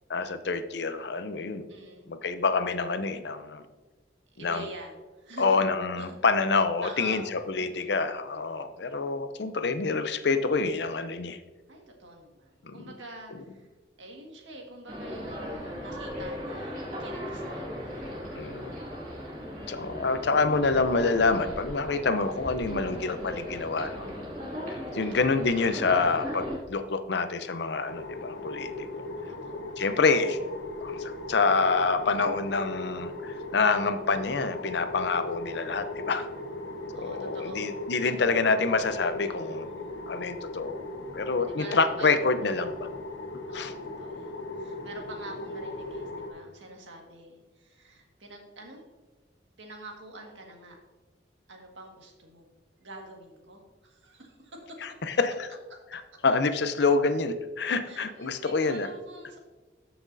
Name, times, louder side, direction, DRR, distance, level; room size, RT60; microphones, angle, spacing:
voice 1, 0.1-1.7 2.1-3.6 4.4-4.6 5.4-11.4 12.6-12.7 18.4-18.7 19.7-24.1 24.9-29.0 29.8-30.4 30.8-36.3 37.0-39.7 40.1-40.8 41.1-42.9 43.5-43.7 54.8-55.5 55.9-58.9, left 4 dB, 65° left, 10 dB, 0.6 m, -27 dB
voice 2, 1.7-2.2 4.3-5.6 6.0-6.2 6.8-8.1 11.7-13.7 14.0-18.8 25.0-25.3 29.3-29.8 36.9-38.1 39.3-39.9 41.4-42.1 42.4-42.8 43.5-48.8 49.6-50.8 51.5-52.5 52.8-54.8 57.9-59.4, right 2 dB, 85° right, 1 dB, 1.8 m, -46 dB
sound 1, 14.9-26.6, equal, 45° right, 2.3 m, -37 dB
sound 2, 27.9-46.3, left 2 dB, 80° left, 1.2 m, -38 dB
13.5 x 6.0 x 2.7 m, 1.2 s
head